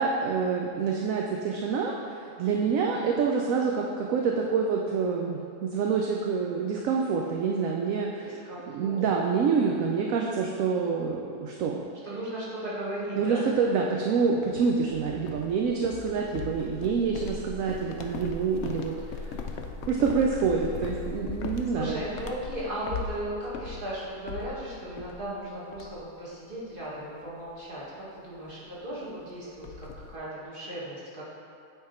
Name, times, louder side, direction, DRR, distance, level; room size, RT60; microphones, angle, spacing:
voice 1, 0.0-8.3 8.7-11.8 13.2-18.9 19.2-19.4 19.9-22.0, right 5 dB, 70° right, 0 dB, 0.9 m, -27 dB
voice 2, 8.2-9.1 9.4-9.8 12.0-13.5 18.9-19.0 21.7-29.9 30.1-31.2, right 1 dB, 35° right, -8 dB, 1.8 m, -36 dB
sound 1, 14.6-25.4 25.7-26.2 26.5-26.8 27.2-27.4 28.5-28.6 28.8-28.9 29.2-30.2, left 4 dB, 70° left, 0.7 m, -39 dB
8.9 x 3.6 x 4.3 m, 2.4 s
omnidirectional pair, 1.6 m